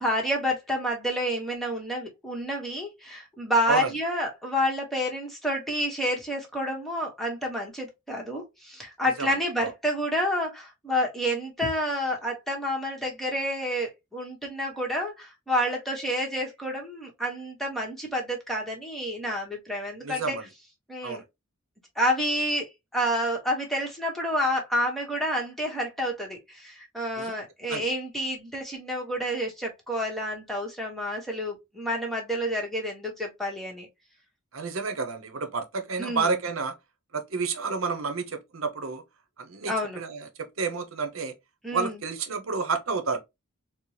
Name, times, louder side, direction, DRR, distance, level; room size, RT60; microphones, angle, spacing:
voice 1, 0.0-20.4 20.9-21.2 22.0-33.9 36.0-36.3 39.7-40.0 41.6-41.9, equal, ahead, 1.0 m, -29 dB
voice 2, 9.2-9.7 20.0-20.4 21.0-21.2 27.1-27.3 27.7-27.8 34.5-36.7 37.1-39.0 39.4-41.3 41.7-43.2, right 4 dB, 75° right, 0.8 m, -30 dB
4.2 x 2.1 x 3.0 m
head